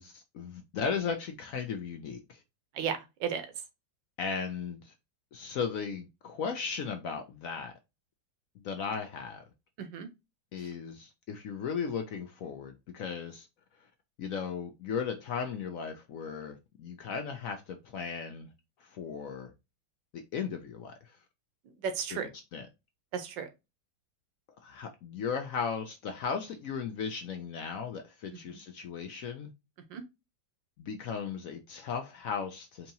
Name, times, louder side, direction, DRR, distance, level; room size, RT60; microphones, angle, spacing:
voice 1, 0.0-2.4 4.2-4.9 5.3-7.7 8.6-9.4 10.5-13.5 14.2-18.5 18.8-19.5 20.1-21.2 22.1-22.7 24.6-29.5 30.8-32.9, left 6 dB, 75° left, 0.8 m, -36 dB
voice 2, 2.7-3.5 9.8-10.1 21.6-22.3 23.1-23.5 28.5-28.6 29.9-30.0, right 7 dB, 80° right, 1.5 m, -34 dB
4.6 x 2.9 x 2.6 m
omnidirectional pair, 2.0 m